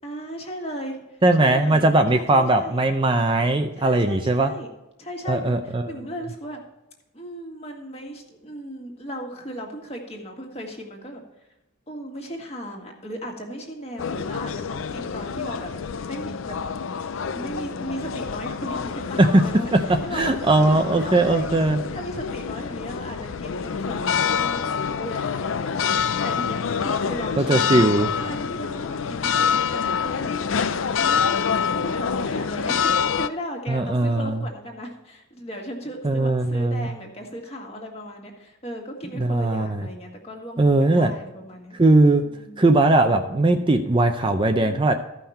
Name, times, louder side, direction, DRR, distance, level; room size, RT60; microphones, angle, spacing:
voice 1, 0.0-2.8 3.8-4.7 5.0-6.6 7.1-11.2 11.9-16.6 17.0-21.5 21.9-27.8 28.2-30.3 31.0-31.4 31.7-41.8 42.2-42.6, equal, 30° left, 1 dB, 1.8 m, -36 dB
voice 2, 1.2-4.5 5.3-5.8 20.1-21.8 27.4-28.1 33.7-34.4 36.0-36.9 39.2-39.8 40.6-41.1 41.8-42.2 42.6-44.9, right 2 dB, 25° right, 6 dB, 0.5 m, -19 dB
sound 1, 14.0-33.3, left 6 dB, 65° left, 0.5 m, -26 dB
14.5 x 5.7 x 4.3 m, 0.95 s
head